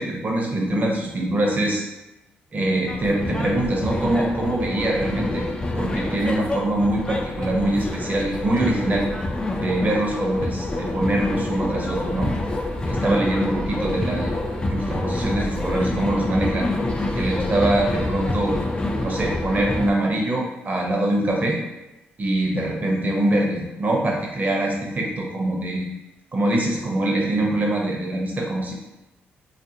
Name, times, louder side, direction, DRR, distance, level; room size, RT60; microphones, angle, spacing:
voice 1, 0.0-1.8 2.5-5.5 5.8-9.1 9.5-12.3 12.9-14.3 14.7-16.7 17.1-18.6 19.0-21.6 22.2-25.9 26.3-28.7, right 1 dB, 40° right, -1 dB, 0.7 m, -23 dB
Waterloo installation at south bank, 2.9-19.9, left 2 dB, 20° left, 0.4 m, -27 dB
2.5 x 2.4 x 2.7 m, 0.97 s
cardioid pair, 75°, 4 cm